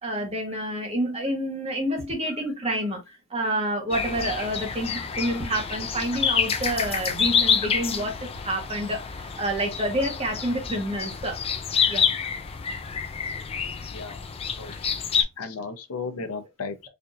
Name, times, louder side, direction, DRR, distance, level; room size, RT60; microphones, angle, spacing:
voice 1, 0.0-3.0 3.3-11.4 11.9-12.0, right 1 dB, 25° right, 1.2 m, -28 dB
sound 1, 3.9-15.2, left 6 dB, 25° left, 0.3 m, -28 dB
voice 2, 13.9-14.8 15.4-16.9, left 4 dB, 80° left, 0.7 m, -35 dB
4.3 x 2.7 x 2.5 m
head